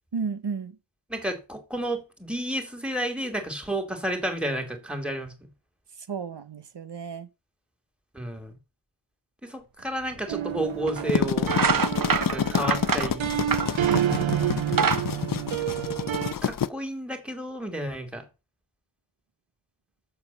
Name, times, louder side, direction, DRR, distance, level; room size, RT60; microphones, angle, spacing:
voice 1, 0.1-0.8 6.0-7.3 13.9-15.1, right 5 dB, 60° right, 1.2 m, -34 dB
voice 2, 1.1-5.3 8.1-8.6 9.4-11.6 12.3-13.3 16.4-18.2, right 1 dB, ahead, 2.6 m, -31 dB
sound 1, 10.1-10.2 10.9-11.1 11.4-14.2 14.5-16.2, right 6 dB, 45° right, 0.9 m, -26 dB
sound 2, 10.3-16.3, right 11 dB, 80° right, 0.7 m, -29 dB
sound 3, 10.9-16.7, left 8 dB, 45° left, 0.6 m, -28 dB
7.4 x 6.8 x 7.0 m
wide cardioid pair, 80°, 46 cm